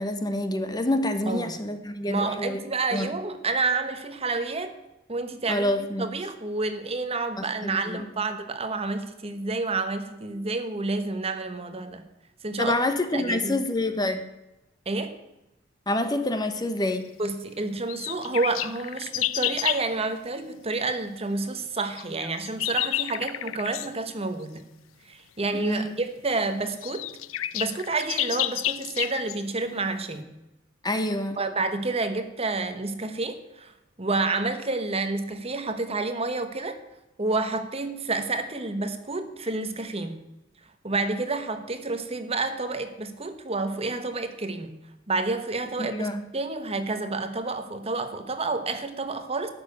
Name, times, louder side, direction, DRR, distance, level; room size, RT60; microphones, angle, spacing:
voice 1, 0.0-2.6 2.9-3.1 5.5-6.1 7.4-8.0 12.6-14.2 15.9-17.0 25.5-25.9 30.8-31.4 45.8-46.2, left 1 dB, 20° left, 8 dB, 1.1 m, -27 dB
voice 2, 1.3-1.6 2.1-4.8 5.1-5.7 6.0-12.0 12.4-12.8 13.1-13.6 14.9-15.1 17.2-24.7 25.0-27.1 27.5-30.3 31.4-36.8 37.2-40.2 40.8-44.7 45.1-49.5, right 3 dB, 30° right, 9 dB, 1.1 m, -29 dB
sound 1, 17.9-19.9 22.0-23.9 25.8-25.9 26.4-26.5 26.7-29.4, left 14 dB, 80° left, 0.5 m, -30 dB
12.5 x 6.7 x 9.6 m, 0.92 s
head